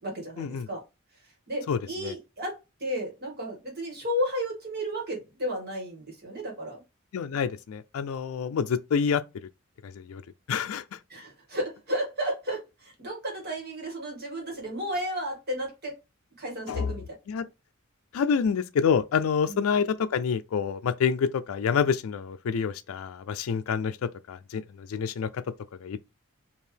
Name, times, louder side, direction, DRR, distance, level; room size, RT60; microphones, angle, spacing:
voice 1, 0.0-0.8 1.5-6.8 11.1-16.0 16.4-17.5 19.5-19.6, equal, 50° right, 2.0 m, -33 dB
voice 2, 1.7-2.1 7.1-9.2 9.8-10.2 10.5-10.8 16.7-16.9 17.3-17.4 18.1-25.4 25.8-26.0, left 6 dB, 85° left, 0.4 m, -27 dB
4.5 x 2.9 x 3.3 m
head